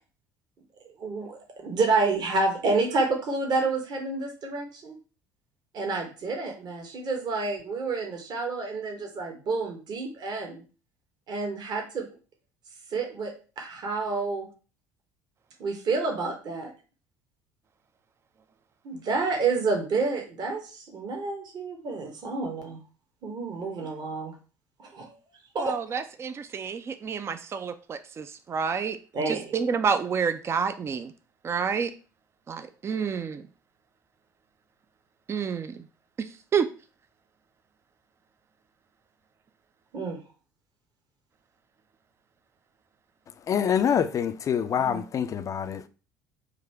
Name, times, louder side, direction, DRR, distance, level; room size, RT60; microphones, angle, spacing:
voice 1, 1.0-5.0 5.7-10.6 11.3-12.1 12.9-14.5 15.6-16.7 18.8-22.8 23.2-24.3 24.8-25.1 25.5-25.8 29.1-29.5 39.9-40.2, right 3 dB, 45° right, 1.1 m, -29 dB
voice 2, 25.6-29.0 29.3-31.1 31.4-31.9 32.5-33.5 35.3-35.8 36.2-36.7 44.9-45.0, right 6 dB, 25° right, 0.4 m, -29 dB
voice 3, 43.5-45.9, left 8 dB, 35° left, 0.4 m, -26 dB
3.8 x 2.7 x 4.5 m
figure-of-eight pair, 60°, 10 cm